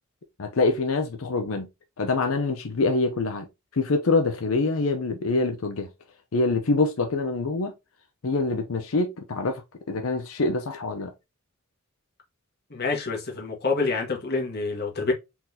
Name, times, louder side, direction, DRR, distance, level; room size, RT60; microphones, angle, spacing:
voice 1, 0.4-1.7 2.0-3.5 3.7-5.9 6.3-7.7 8.2-9.6 9.9-11.1, left 3 dB, 90° left, 0.7 m, -25 dB
voice 2, 12.7-15.1, left 3 dB, 50° left, 1.6 m, -27 dB
4.4 x 4.0 x 2.8 m
head